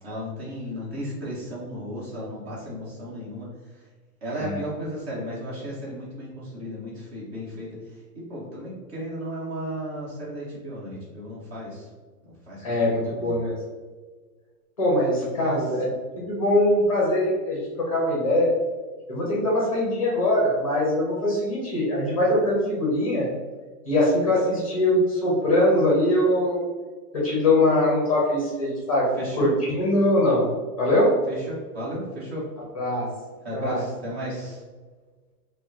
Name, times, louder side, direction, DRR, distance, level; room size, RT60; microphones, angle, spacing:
voice 1, 0.0-3.5 3.7-3.8 4.2-11.9 12.5-12.6 13.1-13.4 15.4-15.6 29.1-29.5 31.3-32.5 33.4-34.6, equal, 40° right, -6 dB, 1.5 m, -34 dB
voice 2, 4.3-4.6 12.6-13.5 14.8-15.8 16.3-18.5 19.1-23.3 23.8-26.7 27.1-29.1 29.4-30.5 30.8-31.2 32.7-33.1 33.5-33.8, left 1 dB, 20° left, -4 dB, 0.6 m, -22 dB
4.7 x 2.2 x 2.8 m, 1.4 s
hypercardioid pair, 180°, 48 cm